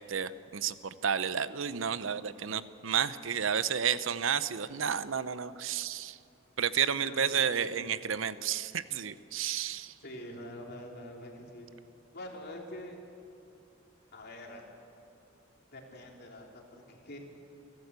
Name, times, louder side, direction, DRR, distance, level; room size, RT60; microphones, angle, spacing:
voice 1, 0.0-6.2 6.6-9.9, right 8 dB, 75° right, 15 dB, 0.7 m, -31 dB
voice 2, 6.9-7.9 10.0-11.7 12.1-13.0 14.1-14.7 15.7-17.2, left 1 dB, 50° left, 1 dB, 3.3 m, -45 dB
29.5 x 12.5 x 8.2 m, 2.6 s
head